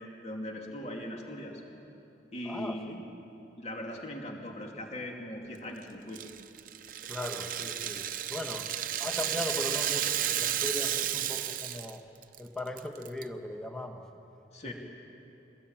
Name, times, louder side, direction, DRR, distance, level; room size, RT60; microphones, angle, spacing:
voice 1, 0.0-1.6 2.3-3.1 3.6-6.2 14.5-14.7, left 1 dB, 35° left, 1 dB, 2.7 m, -39 dB
voice 2, 2.4-3.0 7.1-8.7 9.0-12.0 12.4-14.0 14.6-14.7, left 1 dB, 5° left, 4 dB, 1.5 m, -38 dB
Rattle (instrument), 6.1-12.0 12.2-12.4 12.8-13.2, right 10 dB, 45° right, 0.7 m, -32 dB
23.0 x 20.0 x 8.9 m, 2.9 s
head